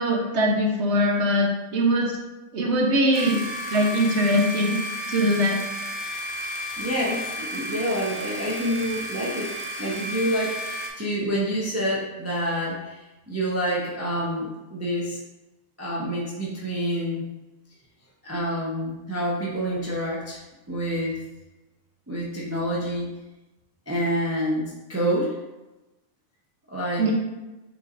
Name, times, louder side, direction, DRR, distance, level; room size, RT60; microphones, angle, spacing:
voice 1, 0.0-2.1 2.5-3.4 3.7-4.8 5.1-5.6 27.0-27.1, equal, 65° right, -1 dB, 1.1 m, -21 dB
sound 1, 3.1-10.9, equal, 30° left, 0.6 m, -33 dB
voice 2, 6.8-9.5 9.8-15.2 15.8-17.3 18.2-20.4 20.7-21.2 22.1-23.1 23.9-25.4 26.7-27.1, equal, 15° right, -5 dB, 0.6 m, -27 dB
6.8 x 3.0 x 2.5 m, 1.0 s
omnidirectional pair, 1.3 m